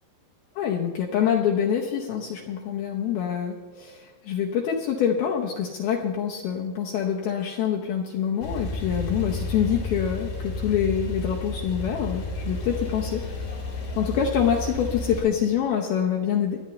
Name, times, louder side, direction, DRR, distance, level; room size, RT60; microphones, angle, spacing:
voice 1, 0.6-13.2 14.0-16.6, left 8 dB, 70° left, -1 dB, 2.5 m, -26 dB
Male speech man speaking / Car / Idling, 8.4-15.2, left 2 dB, 90° left, 6.4 m, -32 dB
28.0 x 9.7 x 3.2 m, 1.5 s
omnidirectional pair, 5.2 m